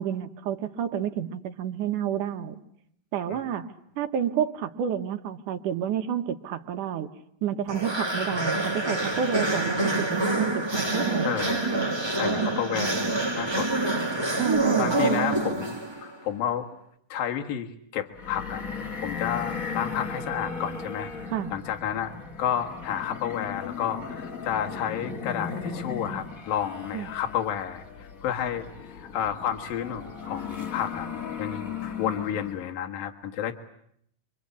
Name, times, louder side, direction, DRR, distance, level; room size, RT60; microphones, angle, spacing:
voice 1, 0.0-2.6 3.1-3.7 4.0-7.1 7.4-11.3 14.4-15.5 21.3-21.5 26.9-27.1, right 9 dB, 70° right, 8 dB, 2.7 m, -30 dB
sound 1, 7.7-16.1, right 2 dB, 20° right, 0.8 m, -26 dB
voice 2, 11.2-11.7 12.2-14.0 14.7-16.8 17.1-18.6 19.0-21.1 21.5-22.1 22.4-31.1 31.4-33.5, left 9 dB, 85° left, 3 dB, 3.4 m, -31 dB
sound 2, 18.1-32.7, left 5 dB, 35° left, 1.4 m, -37 dB
28.0 x 24.5 x 8.5 m, 0.71 s
omnidirectional pair, 4.0 m